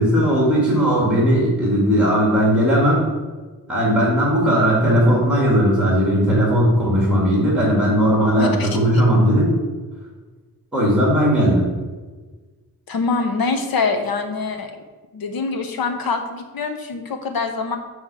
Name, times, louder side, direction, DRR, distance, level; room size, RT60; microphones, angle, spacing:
voice 1, 0.0-3.1 3.7-9.5 10.7-11.7, equal, 5° right, -4 dB, 2.1 m, -17 dB
voice 2, 8.4-8.7 12.9-14.7 15.1-17.8, left 4 dB, 70° left, 6 dB, 1.0 m, -24 dB
7.4 x 3.1 x 6.1 m, 1.3 s
wide cardioid pair, 120°, 36 cm